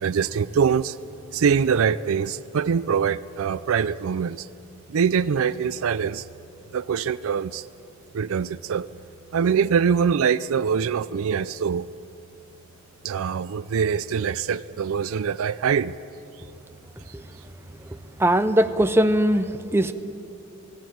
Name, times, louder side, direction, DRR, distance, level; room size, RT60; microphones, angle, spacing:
voice 1, 0.0-1.0 1.3-4.5 4.9-6.3 6.7-7.7 8.1-8.9 9.3-11.9 13.0-15.9, right 6 dB, 65° right, 14 dB, 0.4 m, -23 dB
voice 2, 18.2-19.9, right 1 dB, 10° right, 9 dB, 0.6 m, -20 dB
18.5 x 16.5 x 9.2 m, 2.8 s
head